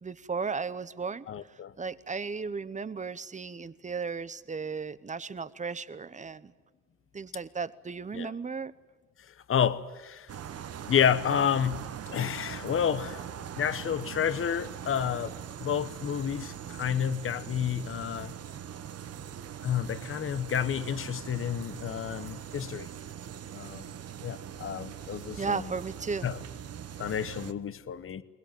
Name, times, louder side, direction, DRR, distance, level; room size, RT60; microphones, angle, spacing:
voice 1, 0.0-6.5 7.1-8.7 25.4-26.3, right 5 dB, 25° right, 0.9 m, -35 dB
voice 2, 1.3-1.7 8.1-8.3 9.5-10.3 10.8-13.2 13.6-18.3 19.6-22.9 23.5-23.9 24.2-25.7 26.2-26.4 27.0-28.2, left 8 dB, 45° left, 1.0 m, -30 dB
sound 1, 10.3-27.5, right 9 dB, 55° right, 1.1 m, -42 dB
23.0 x 20.5 x 9.3 m
cardioid pair, 90°, 30 cm